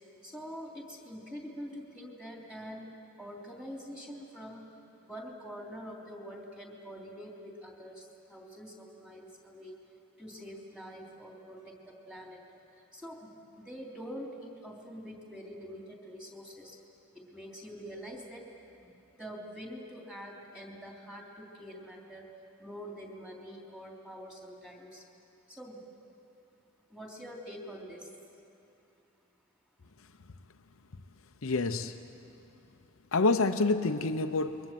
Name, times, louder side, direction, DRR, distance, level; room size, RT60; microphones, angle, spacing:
voice 1, 0.2-2.9 3.2-4.6 5.0-9.8 10.2-12.4 12.7-13.3 13.5-16.8 17.1-18.4 18.8-22.3 22.6-25.0 25.5-25.8 26.9-28.1, equal, 5° right, -1 dB, 3.4 m, -45 dB
voice 2, 31.4-32.0 33.1-34.6, left 3 dB, 75° left, 7 dB, 0.8 m, -27 dB
28.5 x 23.0 x 7.7 m, 2.9 s
head